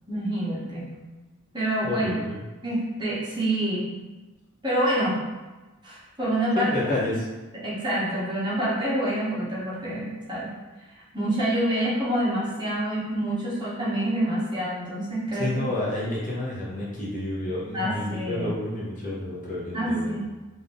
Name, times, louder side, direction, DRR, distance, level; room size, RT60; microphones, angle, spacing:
voice 1, 0.1-0.9 1.5-2.2 2.6-3.9 4.6-5.2 5.8-7.1 7.6-10.5 11.1-15.7 17.7-18.5 19.7-20.2, right 1 dB, 20° right, -8 dB, 1.1 m, -27 dB
voice 2, 1.8-2.4 6.5-7.3 15.3-20.2, left 1 dB, 35° left, -6 dB, 0.8 m, -30 dB
3.9 x 2.6 x 3.4 m, 1.2 s
head